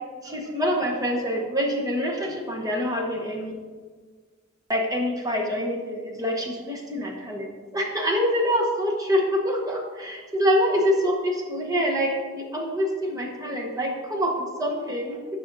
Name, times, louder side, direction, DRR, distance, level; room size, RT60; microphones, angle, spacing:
voice 1, 0.2-3.5 4.7-15.2, equal, 15° right, 0 dB, 0.9 m, -26 dB
12.5 x 4.9 x 2.6 m, 1.5 s
head